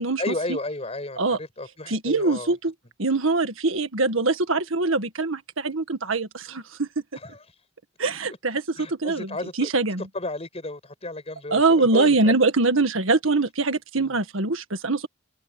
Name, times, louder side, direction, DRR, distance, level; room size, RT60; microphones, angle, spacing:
voice 1, 0.2-2.5 4.5-4.7 7.2-7.4 8.8-9.7 10.1-12.3 14.0-14.2, left 2 dB, 30° left, 6.4 m, -33 dB
voice 2, 1.9-2.7 3.0-6.9 8.0-10.1 11.5-15.1, right 3 dB, 75° right, 1.7 m, -23 dB
head